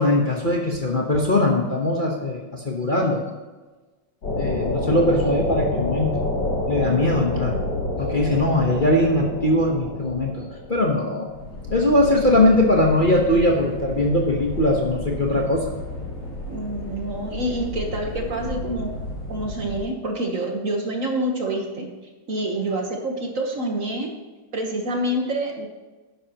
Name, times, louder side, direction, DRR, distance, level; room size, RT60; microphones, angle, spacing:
voice 1, 0.0-3.2 4.3-6.2 6.7-7.6 8.0-11.3 11.7-15.6, left 1 dB, 30° left, -1 dB, 1.1 m, -21 dB
sound 1, 4.2-19.8, left 1 dB, 70° left, 3.4 m, -30 dB
voice 2, 7.4-7.8 16.5-18.9 19.3-21.9 22.3-24.1 24.5-25.7, right 1 dB, 50° right, 2 dB, 1.5 m, -27 dB
12.5 x 10.5 x 3.0 m, 1.2 s
omnidirectional pair, 2.0 m